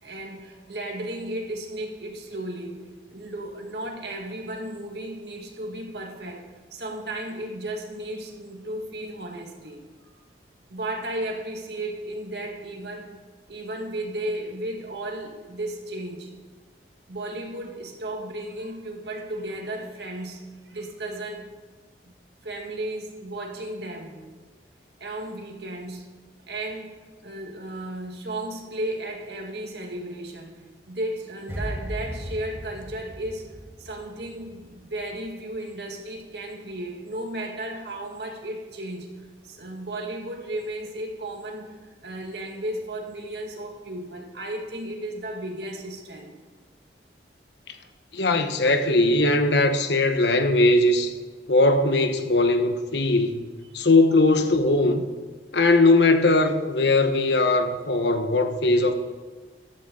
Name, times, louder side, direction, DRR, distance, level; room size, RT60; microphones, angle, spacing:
voice 1, 0.0-2.8 3.1-10.2 10.7-13.1 13.5-16.3 17.1-21.5 22.4-24.3 25.0-26.1 26.5-33.5 33.8-39.1 39.4-41.7 42.0-46.3 47.7-47.9, right 1 dB, 70° right, 1 dB, 2.0 m, -34 dB
sound 1, 31.5-34.7 34.9-35.2, equal, 15° right, 1.5 m, -36 dB
voice 2, 48.1-51.1 51.5-53.4 53.7-55.1 55.5-58.9, left 2 dB, 75° left, 7 dB, 1.2 m, -20 dB
14.0 x 12.5 x 3.9 m, 1.5 s
head